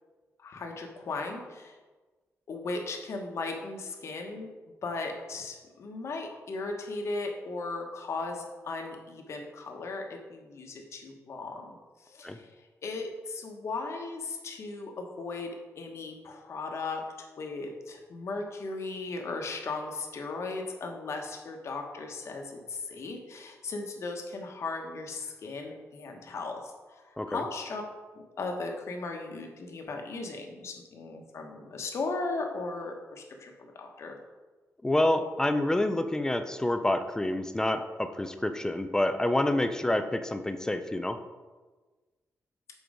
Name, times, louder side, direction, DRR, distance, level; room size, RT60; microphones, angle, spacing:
voice 1, 0.4-1.7 2.5-4.5 4.8-11.7 12.1-12.5 12.8-15.5 15.8-17.0 17.4-27.8 28.1-34.2, left 3 dB, 55° left, 2 dB, 1.2 m, -37 dB
voice 2, 34.8-41.2, left 1 dB, 10° left, 9 dB, 0.4 m, -28 dB
7.3 x 4.6 x 5.0 m, 1.3 s
wide cardioid pair, 145°, 6 cm